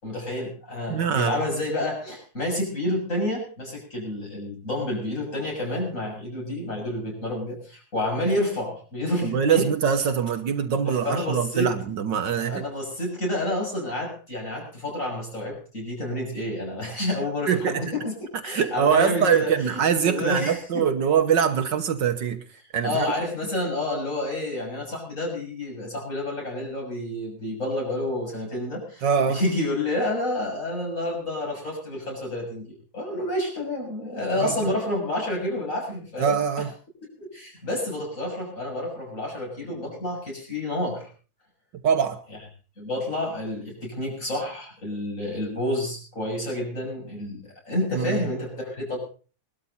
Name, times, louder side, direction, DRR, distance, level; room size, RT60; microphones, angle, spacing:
voice 1, 0.0-9.7 11.0-11.8 12.4-18.1 18.4-20.8 22.8-36.4 37.2-41.1 42.3-42.4 42.8-49.0, left 1 dB, 40° left, 7.7 m, -29 dB
voice 2, 0.9-1.4 9.2-12.6 17.5-17.8 18.4-22.4 22.7-23.1 29.0-29.4 34.4-34.5 36.2-36.7 41.8-42.2 47.9-48.2, right 7 dB, 65° right, 1.7 m, -23 dB
21.5 x 12.5 x 4.1 m
omnidirectional pair, 2.1 m